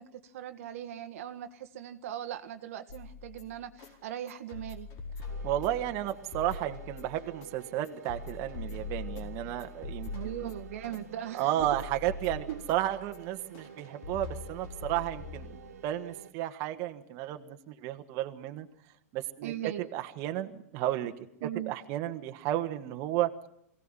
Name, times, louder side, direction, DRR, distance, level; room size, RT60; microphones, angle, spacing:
voice 1, 0.0-4.9 10.1-11.7 12.5-12.6 19.4-19.9 21.4-21.7, right 11 dB, 65° right, 8 dB, 1.5 m, -39 dB
sound 1, 2.9-15.9, left 4 dB, 45° left, 4.5 m, -43 dB
sound 2, 5.3-16.3, right 8 dB, 85° right, 2.0 m, -51 dB
voice 2, 5.4-10.5 11.3-18.7 19.1-19.5 19.9-21.1 21.7-23.3, right 13 dB, 40° right, 6 dB, 1.6 m, -33 dB
22.5 x 17.5 x 9.1 m, 0.76 s
hypercardioid pair, 130°, 8 cm